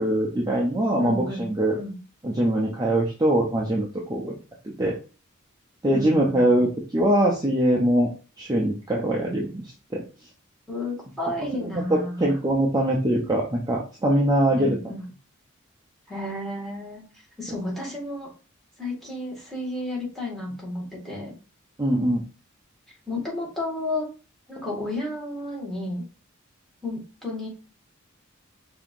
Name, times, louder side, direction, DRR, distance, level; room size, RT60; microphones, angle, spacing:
voice 1, 0.0-1.8 2.2-4.3 4.8-4.9 5.8-6.7 6.9-8.1 8.4-9.6 9.9-10.0 11.6-14.9 21.8-22.2, right 1 dB, 20° right, -3 dB, 0.8 m, -22 dB
voice 2, 1.0-1.5 1.7-1.9 5.9-6.6 10.7-12.3 14.5-15.0 16.1-17.0 17.4-18.3 18.8-21.3 23.1-24.1 24.5-26.0 26.8-27.5, left 1 dB, ahead, -4 dB, 2.0 m, -32 dB
5.5 x 2.9 x 2.6 m, 0.34 s
head